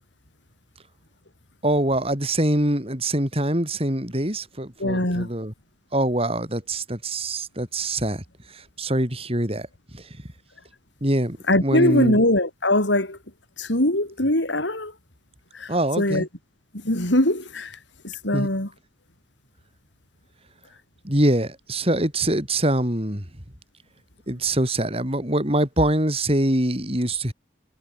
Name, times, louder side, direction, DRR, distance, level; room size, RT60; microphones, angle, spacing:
voice 1, 1.6-5.5 5.9-8.2 8.5-9.7 9.9-10.2 11.0-12.2 15.7-16.3 18.3-18.5 21.0-23.2 24.3-27.3, right 1 dB, 35° right, 6.6 m, -24 dB
voice 2, 4.8-5.3 11.5-13.2 13.6-14.9 15.5-16.3 16.7-17.8 18.0-18.7, left 1 dB, 90° left, 7.1 m, -22 dB
head